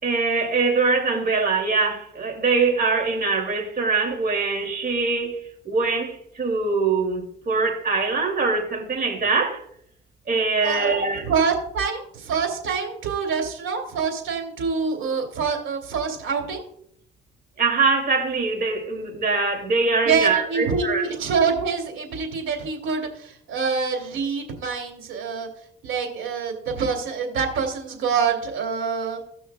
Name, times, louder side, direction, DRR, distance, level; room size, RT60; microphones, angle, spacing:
voice 1, 0.0-5.4 5.6-9.6 10.3-11.3 17.6-21.0, right 4 dB, 50° right, 2.8 m, -23 dB
voice 2, 10.6-16.6 20.0-25.5 25.8-29.2, right 5 dB, 80° right, 2.7 m, -26 dB
17.0 x 6.2 x 2.4 m
cardioid pair, 90°, 20 cm